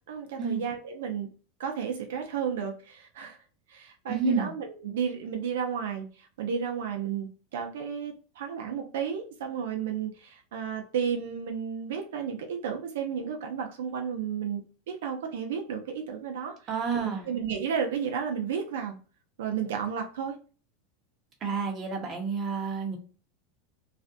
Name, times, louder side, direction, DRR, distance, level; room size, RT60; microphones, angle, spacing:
voice 1, 0.1-1.3 1.6-3.4 3.7-19.0 19.4-20.4, right 7 dB, 85° right, 0.5 m, -33 dB
voice 2, 4.1-4.5 16.7-17.2 21.4-23.0, right 5 dB, 30° right, 0.8 m, -29 dB
2.4 x 2.1 x 2.5 m
supercardioid pair, 140°, 0 cm